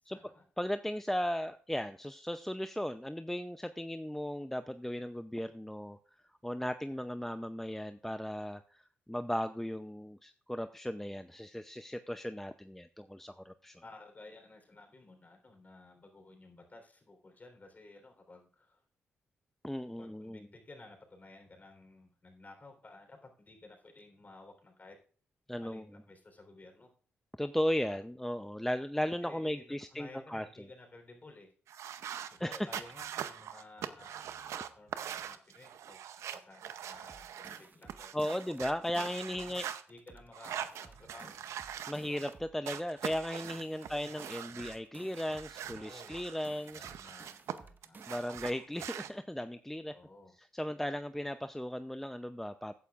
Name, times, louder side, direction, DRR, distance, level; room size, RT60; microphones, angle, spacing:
voice 1, 0.0-0.5 13.8-18.8 20.0-25.0 25.6-26.9 27.9-28.0 29.2-31.5 32.3-34.3 34.7-38.5 38.9-39.6 39.9-41.4 42.0-42.2 43.8-44.1 45.7-46.2 46.8-47.3 47.6-48.0 49.9-50.3, left 2 dB, 35° left, 4 dB, 3.8 m, -55 dB
voice 2, 0.6-6.0 6.4-8.8 9.1-13.8 19.6-20.5 25.5-25.8 27.4-30.5 32.4-32.7 38.1-39.7 41.9-46.8 48.1-49.9 50.4-52.7, equal, 5° left, 10 dB, 0.6 m, -36 dB
sound 1, 31.7-37.6 37.9-39.8 40.3-42.3 42.6-44.8 45.1-47.5 47.8-49.1, right 9 dB, 75° right, 0.7 m, -43 dB
sound 2, 36.9-39.6 39.9-42.6 42.9-45.6 45.9-48.6, right 4 dB, 40° right, 1.3 m, -56 dB
15.5 x 9.2 x 2.5 m, 0.44 s
supercardioid pair, 50°, 5 cm